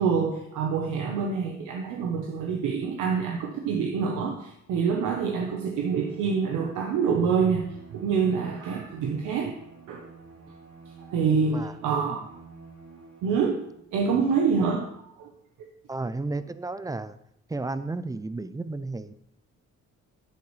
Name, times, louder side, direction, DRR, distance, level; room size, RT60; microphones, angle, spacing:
voice 1, 0.0-7.7 7.9-9.5 9.9-10.1 11.0-12.2 13.2-13.6 13.9-14.9 15.2-15.3, right 5 dB, 85° right, 1 dB, 1.0 m, -26 dB
Bowed string instrument, 5.3-13.8, right 4 dB, 55° right, 3.7 m, -49 dB
voice 2, 11.3-11.7 12.0-12.3 15.9-17.2 17.5-19.1, right 3 dB, 10° right, 14 dB, 0.5 m, -33 dB
10.5 x 8.5 x 3.2 m, 0.76 s
cardioid pair, 90°, 30 cm